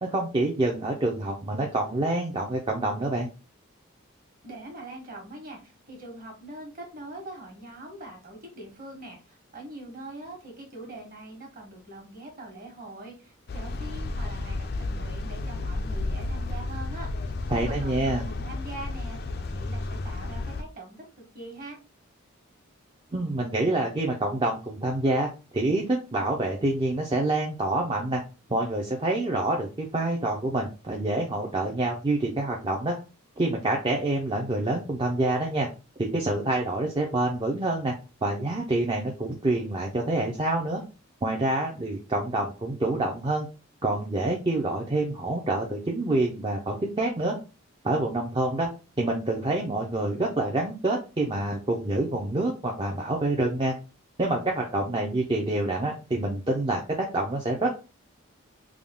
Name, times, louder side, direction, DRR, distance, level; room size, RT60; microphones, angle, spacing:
voice 1, 0.0-3.3 17.5-18.3 23.1-28.2 28.5-33.0 33.4-35.7 36.0-37.9 38.2-40.8 41.2-43.5 43.8-47.4 47.8-48.7 49.0-53.7 54.2-57.8, right 2 dB, 25° right, -1 dB, 0.5 m, -27 dB
voice 2, 4.4-17.3 17.5-21.0 21.3-21.8, right 1 dB, 40° right, 1 dB, 1.3 m, -43 dB
sound 1, 13.5-20.6, left 2 dB, 45° left, 0.4 m, -32 dB
3.5 x 2.2 x 3.5 m, 0.31 s
head